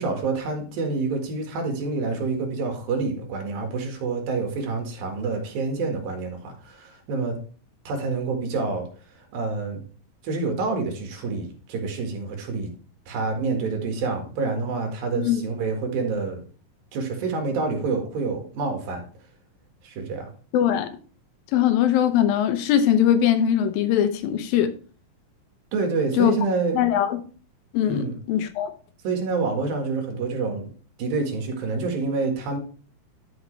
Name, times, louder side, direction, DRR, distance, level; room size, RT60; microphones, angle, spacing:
voice 1, 0.0-7.4 7.9-8.9 9.3-9.8 10.2-12.7 13.1-16.4 16.9-19.1 19.8-20.3 25.7-26.8 27.9-28.2 29.0-30.7 31.0-32.6, right 4 dB, 85° right, 3.6 m, -27 dB
voice 2, 20.5-20.9 21.5-24.7 26.2-26.3 26.7-27.2 27.7-28.7, left 10 dB, 90° left, 2.7 m, -21 dB
12.0 x 5.4 x 3.2 m
omnidirectional pair, 4.0 m